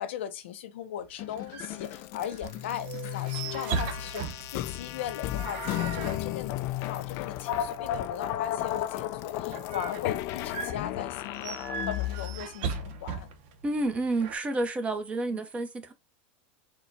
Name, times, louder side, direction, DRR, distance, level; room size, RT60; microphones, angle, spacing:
voice 1, 0.0-13.3 15.3-15.4, left 10 dB, 85° left, 0.7 m, -38 dB
sound 1, 1.0-14.4, right 5 dB, 60° right, 0.8 m, -39 dB
sound 2, 1.2-12.4, left 13 dB, 50° left, 0.4 m, -34 dB
voice 2, 13.6-15.9, right 2 dB, 20° right, 0.8 m, -29 dB
4.4 x 2.3 x 4.1 m
supercardioid pair, 125°, 6 cm